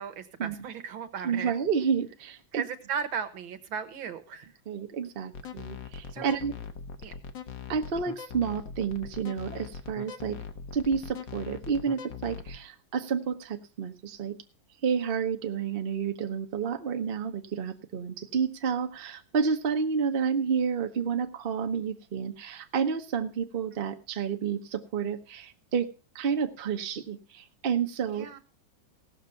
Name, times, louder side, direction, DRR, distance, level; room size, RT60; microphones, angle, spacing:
voice 1, 0.0-1.5 2.5-4.5 6.1-6.3 7.0-7.1 28.1-28.4, right 7 dB, 90° right, 9 dB, 2.1 m, -36 dB
voice 2, 1.2-2.6 4.7-6.6 7.7-10.4 10.7-14.4 14.8-25.9 26.1-28.4, right 6 dB, 35° right, 6 dB, 1.0 m, -30 dB
sound 1, 5.3-12.6, left 6 dB, 70° left, 1.8 m, -41 dB
17.0 x 6.6 x 5.7 m, 0.35 s
omnidirectional pair, 2.1 m